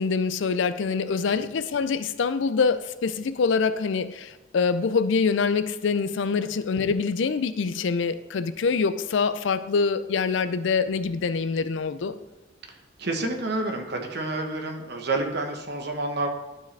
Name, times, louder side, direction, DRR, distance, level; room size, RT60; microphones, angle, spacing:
voice 1, 0.0-12.2, left 5 dB, 65° left, 12 dB, 0.4 m, -25 dB
voice 2, 13.0-16.3, right 2 dB, 55° right, 3 dB, 1.1 m, -29 dB
12.0 x 4.8 x 3.4 m, 1.1 s
head